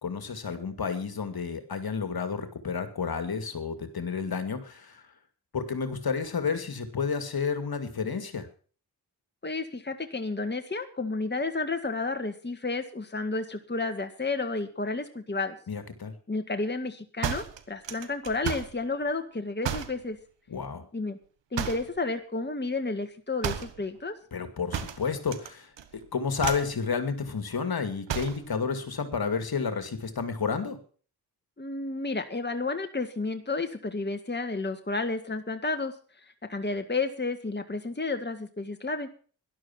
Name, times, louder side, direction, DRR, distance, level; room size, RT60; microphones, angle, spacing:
voice 1, 0.0-5.0 5.5-8.5 15.7-16.1 20.5-20.8 24.3-25.7 26.1-30.8, left 5 dB, 55° left, 8 dB, 2.4 m, -31 dB
voice 2, 9.4-15.6 16.3-20.2 20.9-21.2 21.5-24.1 31.6-35.9 36.5-39.1, left 3 dB, 25° left, 6 dB, 2.0 m, -31 dB
sound 1, 17.2-18.8 19.6-20.0 21.5-22.0 23.4-23.8 24.7-25.5 25.8-26.0 26.4-26.8 28.1-28.5, right 9 dB, 75° right, 1.5 m, -33 dB
12.5 x 11.5 x 6.0 m, 0.42 s
supercardioid pair, 40°, 43 cm